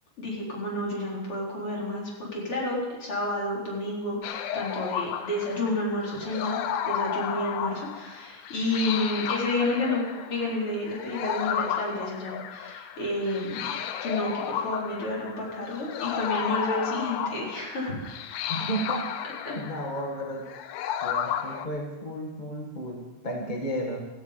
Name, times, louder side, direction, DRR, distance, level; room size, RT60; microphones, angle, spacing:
voice 1, 0.2-13.7 14.0-18.1 19.5-19.6, left 1 dB, 45° left, -4 dB, 4.9 m, -30 dB
sound 1, 4.2-21.7, left 9 dB, 90° left, 2.4 m, -33 dB
voice 2, 18.5-19.1 19.5-20.5 21.0-24.0, right 1 dB, 20° left, 1 dB, 1.4 m, -33 dB
16.5 x 14.5 x 5.2 m, 1.1 s
omnidirectional pair, 3.5 m